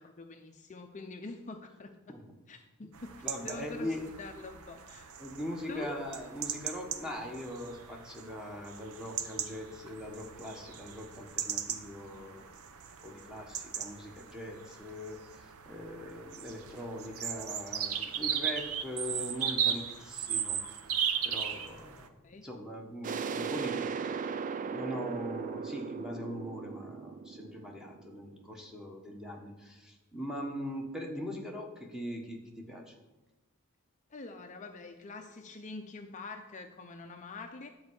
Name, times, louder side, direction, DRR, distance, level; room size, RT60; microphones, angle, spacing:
voice 1, 0.0-1.9 2.5-2.6 3.0-3.9 4.2-5.1 5.7-6.0 22.2-22.5 34.1-37.7, left 3 dB, 35° left, 4 dB, 0.6 m, -45 dB
sound 1, 2.9-22.1, right 8 dB, 70° right, 0.8 m, -37 dB
voice 2, 3.2-4.1 5.2-12.5 13.0-20.8 21.2-22.1 22.4-32.9, equal, 5° right, 0 dB, 1.4 m, -41 dB
sound 2, 23.0-28.5, right 6 dB, 35° right, 0.4 m, -37 dB
10.5 x 4.7 x 8.0 m, 1.1 s
head